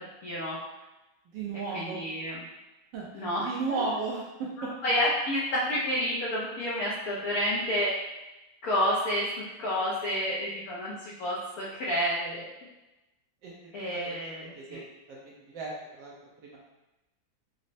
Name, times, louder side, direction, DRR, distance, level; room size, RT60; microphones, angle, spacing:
voice 1, 0.2-0.6 1.7-2.4 3.1-3.8 4.6-7.9 8.6-9.3 9.6-12.4 13.7-14.8, equal, 70° left, -6 dB, 0.9 m, -30 dB
voice 2, 1.3-2.0 2.9-4.2 13.4-13.5 13.9-14.1 14.5-14.8 15.1-15.2 15.5-15.7 16.0-16.1 16.4-16.6, right 4 dB, 75° right, -4 dB, 1.2 m, -34 dB
4.0 x 2.0 x 2.6 m, 1.0 s
omnidirectional pair, 2.1 m